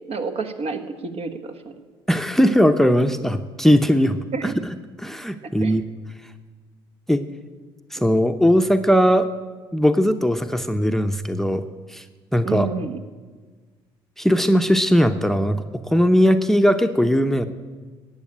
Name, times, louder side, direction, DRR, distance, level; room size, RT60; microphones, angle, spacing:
voice 1, 0.1-1.5 4.3-4.5 5.6-5.7 12.4-13.0, right 4 dB, 55° right, 6 dB, 1.5 m, -28 dB
voice 2, 2.1-4.5 5.0-5.8 7.1-7.2 7.9-9.3 9.7-11.6 11.9-12.0 12.3-12.7 14.2-17.5, equal, 5° left, 9 dB, 0.8 m, -19 dB
13.5 x 8.6 x 8.6 m, 1.4 s
supercardioid pair, 70°, 12 cm